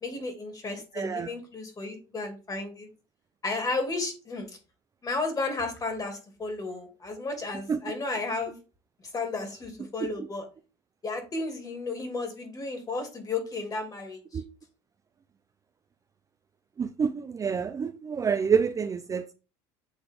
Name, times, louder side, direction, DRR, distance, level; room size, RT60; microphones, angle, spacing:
voice 1, 0.0-2.9 3.4-4.6 5.0-8.6 9.1-10.5 11.0-14.4, left 3 dB, 30° left, 2.6 m, -33 dB
voice 2, 0.9-1.3 7.7-7.8 10.0-10.1 14.3-14.4 16.8-19.3, right 6 dB, 25° right, 0.5 m, -27 dB
8.1 x 3.5 x 3.7 m
supercardioid pair, 95°, 13 cm